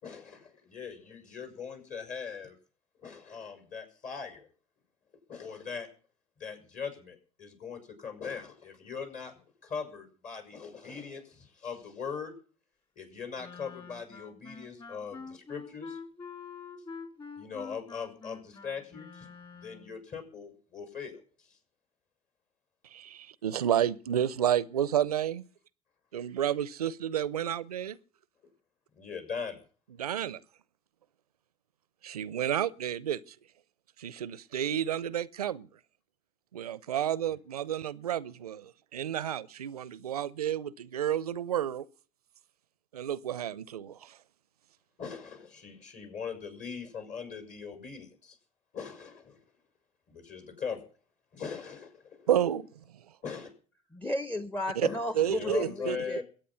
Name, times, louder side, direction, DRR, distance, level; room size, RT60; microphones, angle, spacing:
voice 1, 0.0-2.6 3.0-4.5 5.3-5.9 6.4-12.3 13.0-16.0 17.4-19.3 19.5-21.2 28.9-29.6 45.0-48.4 48.7-49.4 50.1-50.8 51.3-52.3 53.2-53.5 54.8-56.2, left 6 dB, 45° left, 6.1 m, -40 dB
Wind instrument woodwind instrument, 13.4-20.0, left 5 dB, 25° left, 4.0 m, -46 dB
voice 2, 22.9-25.4 26.1-28.0 30.0-30.4 32.0-33.3 34.0-35.7 36.5-41.9 42.9-44.2 52.3-53.0 54.8-54.9 55.1-56.0, right 10 dB, 90° right, 0.6 m, -31 dB
voice 3, 53.9-56.2, left 1 dB, 10° left, 0.9 m, -33 dB
22.0 x 8.9 x 5.7 m
hypercardioid pair, 70°, 19 cm